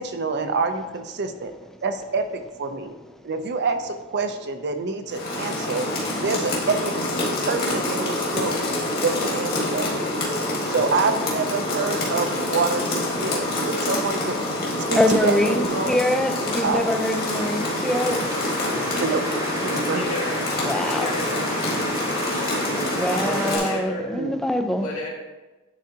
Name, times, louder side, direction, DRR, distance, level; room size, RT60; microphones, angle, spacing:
voice 1, 0.0-1.5 1.8-2.3 2.6-2.9 3.2-5.9 6.2-6.9 7.5-8.7 9.0-9.9 10.7-14.4 14.9-16.0 16.6-16.9 19.0-19.2 19.6-20.0 24.1-24.4, right 4 dB, 55° right, 0.6 m, -26 dB
Rain, 5.1-23.8, left 1 dB, 45° left, 1.8 m, -26 dB
voice 2, 10.3-10.6 14.9-18.4 20.6-21.1 22.9-24.9, left 1 dB, ahead, 0.3 m, -24 dB
sound 1, 15.6-23.6, right 1 dB, 15° right, 0.7 m, -34 dB
voice 3, 19.9-20.5 20.8-21.6 23.2-24.2 24.7-25.1, left 1 dB, 80° left, 2.1 m, -31 dB
10.0 x 3.8 x 2.8 m
head